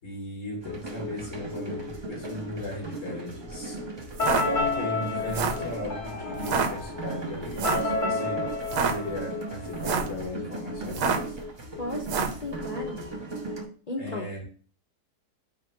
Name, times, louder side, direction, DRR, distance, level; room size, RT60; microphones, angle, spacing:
voice 1, 0.0-4.1 4.4-11.4 14.0-14.4, left 2 dB, 55° left, 2.1 m, -36 dB
sound 1, 0.6-13.6, right 1 dB, 35° right, 0.4 m, -37 dB
sound 2, 4.1-4.4 5.2-5.7 6.4-6.7 7.6-7.9 8.6-8.9 9.7-10.2 10.9-11.3 12.0-12.4, right 6 dB, 90° right, 1.2 m, -27 dB
sound 3, 4.2-9.9, left 3 dB, 40° left, 1.0 m, -31 dB
voice 2, 11.8-13.0 13.9-14.3, left 1 dB, 80° left, 0.3 m, -35 dB
4.8 x 2.1 x 4.4 m
omnidirectional pair, 1.7 m